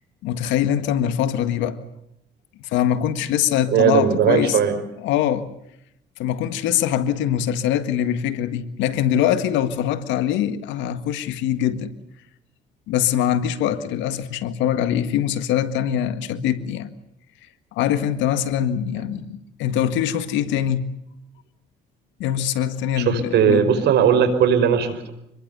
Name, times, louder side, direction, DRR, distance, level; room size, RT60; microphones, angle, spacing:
voice 1, 0.2-1.8 2.6-4.6 5.0-5.5 6.2-11.9 12.9-16.9 17.7-20.9 22.2-23.6, left 10 dB, 85° left, 1.8 m, -23 dB
voice 2, 3.7-4.7 23.0-25.1, right 7 dB, 65° right, 5.0 m, -18 dB
27.0 x 21.5 x 6.9 m
cardioid pair, 105°, 19 cm